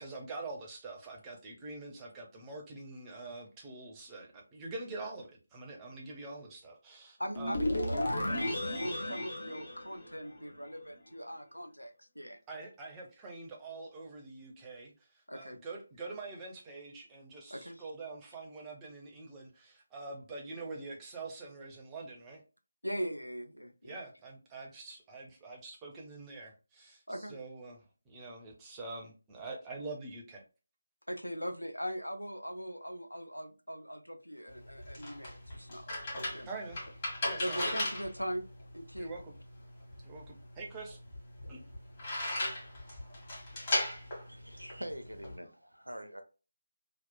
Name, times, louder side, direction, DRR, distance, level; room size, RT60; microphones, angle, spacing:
voice 1, 0.0-7.7 12.5-22.4 23.8-30.4 36.5-36.8 37.2-37.8 39.0-39.3 40.0-41.0 41.5-41.6, right 3 dB, 10° right, 0.5 m, -45 dB
voice 2, 7.2-12.4 15.3-15.6 17.5-17.8 22.8-23.9 27.1-27.4 31.1-35.9 36.3-36.5 37.4-38.4 38.7-39.1, equal, 90° left, 0.4 m, -40 dB
sound 1, 7.3-10.6, left 1 dB, 55° left, 0.7 m, -34 dB
sound 2, 34.5-45.4, left 1 dB, 30° left, 1.2 m, -37 dB
voice 3, 44.3-46.2, equal, 85° right, 0.5 m, -44 dB
2.8 x 2.0 x 2.2 m
figure-of-eight pair, 155°, 0 cm